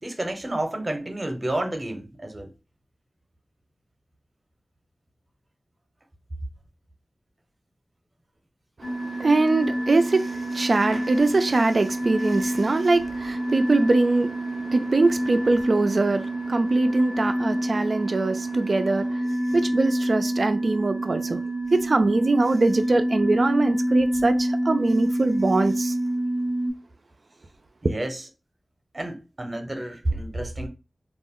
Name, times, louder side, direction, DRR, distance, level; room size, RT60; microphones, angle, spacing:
voice 1, 0.0-2.5 19.5-19.6 27.8-28.3 28.9-30.7, right 1 dB, 30° right, 0.7 m, -30 dB
sound 1, 8.8-26.7, right 1 dB, 65° left, 0.8 m, -27 dB
voice 2, 8.8-19.2 19.5-21.4 21.7-25.9, right 2 dB, 55° right, 0.3 m, -22 dB
2.3 x 2.1 x 3.6 m
wide cardioid pair, 70°, 0 cm